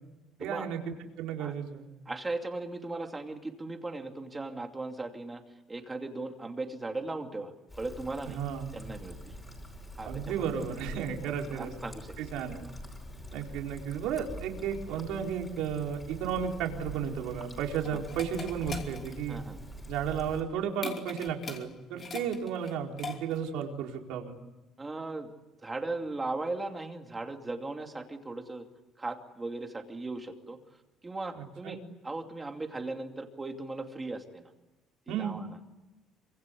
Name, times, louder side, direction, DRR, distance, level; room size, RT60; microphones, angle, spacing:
voice 1, 0.4-1.8 8.3-8.7 10.0-11.7 12.2-12.6 13.3-19.4 19.9-24.4 31.4-31.8 35.1-35.4, right 8 dB, 70° right, 1 dB, 4.4 m, -33 dB
voice 2, 2.1-5.4 5.7-8.4 8.7-9.3 10.0-10.7 10.9-12.1 12.5-12.7 17.9-18.0 19.3-19.6 24.8-25.3 25.6-28.6 29.0-30.6 31.0-31.8 32.0-34.5 35.1-35.5, right 2 dB, 10° right, 4 dB, 2.6 m, -38 dB
Trickle dribble, 7.7-20.4, equal, 10° left, 5.2 m, -45 dB
sound 1, 17.1-23.6, left 5 dB, 25° left, 2.9 m, -43 dB
27.5 x 25.5 x 8.5 m, 1.0 s
cardioid pair, 180°, 0 cm